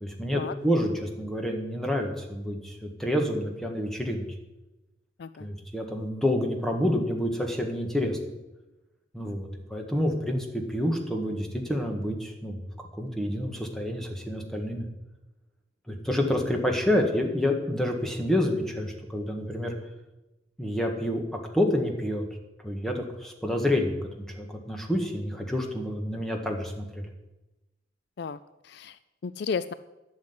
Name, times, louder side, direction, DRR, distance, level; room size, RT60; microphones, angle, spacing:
voice 1, 0.0-4.2 5.4-8.2 9.1-14.8 15.9-19.7 20.6-21.2 21.5-22.2 22.6-27.0, left 1 dB, ahead, 2 dB, 1.6 m, -28 dB
voice 2, 28.6-29.7, left 5 dB, 55° left, 15 dB, 0.4 m, -33 dB
11.5 x 6.5 x 9.5 m, 1.0 s
head